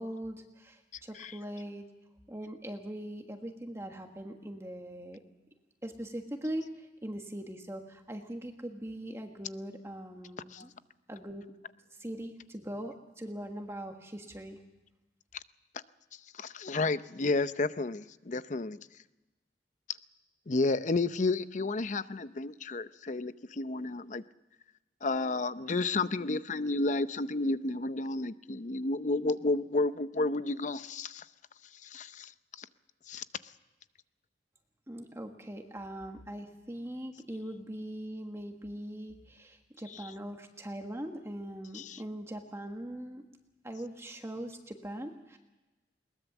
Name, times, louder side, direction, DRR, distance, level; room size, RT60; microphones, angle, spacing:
voice 1, 0.0-1.8 2.3-5.2 5.8-10.7 11.1-11.5 11.9-14.6 34.9-43.2 43.6-45.4, right 1 dB, 15° right, 4 dB, 1.5 m, -41 dB
voice 2, 16.3-18.8 20.5-24.2 25.0-31.2 31.8-32.3 32.6-32.7 33.1-33.2 39.9-40.1 41.7-42.0, left 3 dB, 45° left, 14 dB, 0.7 m, -31 dB
21.5 x 19.5 x 7.2 m, 1.1 s
head